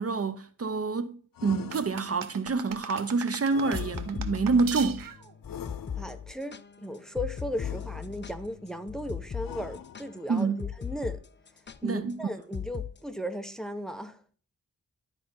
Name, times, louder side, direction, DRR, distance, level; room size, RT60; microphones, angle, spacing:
voice 1, 0.0-5.1 10.3-10.6 11.8-12.3, right 4 dB, 45° right, 0.6 m, -27 dB
sound 1, 1.3-2.4 3.5-4.5 5.4-6.4 7.5-8.4 9.4-10.3, left 9 dB, 90° left, 0.5 m, -44 dB
sound 2, 1.7-5.3, right 8 dB, 90° right, 0.8 m, -40 dB
sound 3, 3.5-11.2 11.5-11.8 12.5-12.9, left 7 dB, 35° left, 0.5 m, -38 dB
voice 2, 6.0-11.2 11.8-14.3, equal, ahead, 0.7 m, -36 dB
11.5 x 4.9 x 3.7 m
wide cardioid pair, 95°, 33 cm